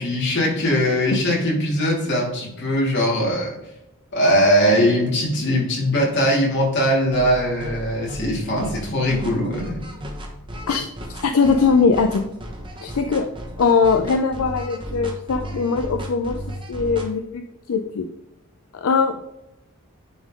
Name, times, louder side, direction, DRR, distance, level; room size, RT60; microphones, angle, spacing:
voice 1, 0.0-3.6 4.1-9.8, equal, 55° left, -3 dB, 2.5 m, -20 dB
sound 1, 7.1-17.1, equal, 25° right, 1.1 m, -34 dB
voice 2, 11.2-12.2 12.8-13.3 13.6-18.1 18.7-19.2, left 5 dB, 80° left, 6 dB, 0.5 m, -20 dB
9.9 x 3.7 x 3.7 m, 0.90 s
head